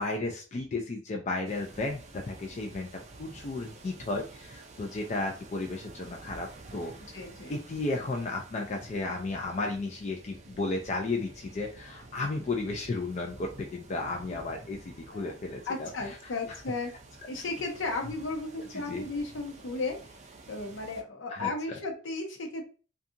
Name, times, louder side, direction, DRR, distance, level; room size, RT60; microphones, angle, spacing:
voice 1, 0.0-2.9 3.2-6.9 7.5-16.2 18.7-19.0 21.3-21.5, left 2 dB, 35° left, 2 dB, 0.3 m, -34 dB
sound 1, 1.4-21.0, right 2 dB, 35° right, 0.4 m, -50 dB
voice 2, 7.1-7.6 15.1-15.3 15.7-16.9 17.3-20.2 20.5-22.6, left 3 dB, 70° left, 2 dB, 0.7 m, -35 dB
2.7 x 2.3 x 2.5 m, 0.36 s
head